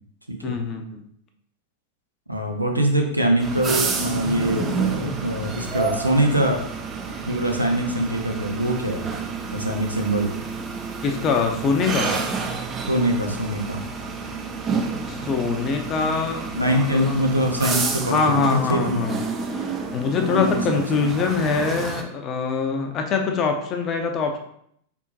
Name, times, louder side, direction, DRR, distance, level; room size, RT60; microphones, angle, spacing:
voice 1, 0.4-1.1 11.0-12.1 15.0-17.2 18.1-19.2 19.5-19.6 19.9-24.4, left 5 dB, 30° left, 4 dB, 0.6 m, -24 dB
voice 2, 2.3-6.6 7.3-9.1 9.5-10.3 12.9-13.9 16.5-19.0 20.3-20.6 20.9-21.1, right 1 dB, 85° right, 2 dB, 0.7 m, -23 dB
sound 1, 3.4-22.0, right 4 dB, 25° right, 0.5 m, -29 dB
4.3 x 3.5 x 2.8 m, 0.69 s
figure-of-eight pair, 90°, 0 cm